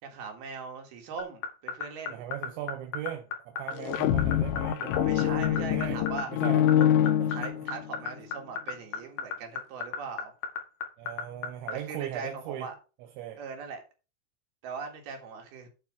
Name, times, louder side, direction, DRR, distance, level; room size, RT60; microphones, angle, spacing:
voice 1, 0.0-2.2 5.0-6.3 6.8-6.9 7.3-10.3 11.7-12.8 13.4-13.8 14.6-15.7, right 5 dB, 65° right, 3.5 m, -40 dB
sound 1, 1.2-11.7, left 6 dB, 60° left, 2.3 m, -32 dB
voice 2, 2.1-6.7 7.2-7.5 11.0-12.7 13.2-13.4, right 12 dB, 85° right, 3.3 m, -38 dB
sound 2, 3.7-8.0, left 11 dB, 85° left, 3.0 m, -25 dB
9.3 x 4.4 x 6.0 m
omnidirectional pair, 5.1 m